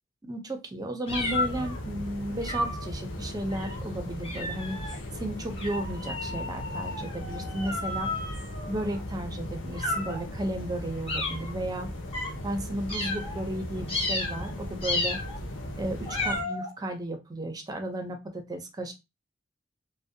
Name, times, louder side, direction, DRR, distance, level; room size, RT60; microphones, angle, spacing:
voice 1, 0.3-8.1 8.7-11.9 12.4-15.2 15.8-18.9, right 1 dB, 20° right, 5 dB, 0.4 m, -34 dB
sound 1, 1.1-16.4, left 1 dB, 75° left, 0.6 m, -37 dB
sound 2, 1.1-1.8 2.4-2.9 3.5-3.8 4.2-5.0 5.6-9.0 9.7-10.2 11.1-11.5 12.1-12.3 12.9-13.4 13.9-14.5 14.8-15.4 16.0-16.7, left 2 dB, 30° left, 0.7 m, -32 dB
2.5 x 2.0 x 2.6 m, 0.24 s
head